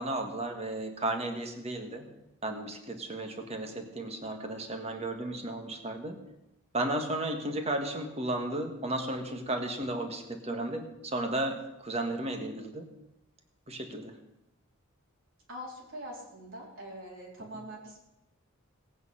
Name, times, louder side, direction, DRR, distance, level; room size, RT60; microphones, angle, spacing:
voice 1, 0.0-2.1 2.4-6.2 6.7-12.9 13.7-14.2, right 1 dB, 30° right, 5 dB, 1.6 m, -34 dB
voice 2, 15.5-18.0, equal, 65° right, -3 dB, 3.9 m, -43 dB
17.5 x 9.3 x 5.7 m, 0.88 s
head